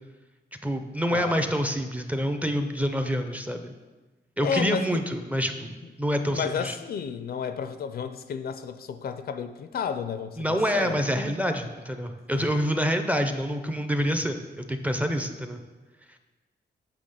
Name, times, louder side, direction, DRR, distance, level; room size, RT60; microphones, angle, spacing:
voice 1, 0.6-3.7 4.4-5.7 6.0-6.8 10.4-15.6, equal, 10° right, 7 dB, 0.4 m, -27 dB
voice 2, 1.1-1.5 4.4-5.0 6.3-11.1 12.3-12.5 14.9-15.1, left 6 dB, 60° left, 10 dB, 0.4 m, -32 dB
7.5 x 3.5 x 6.4 m, 1.2 s
wide cardioid pair, 165°, 18 cm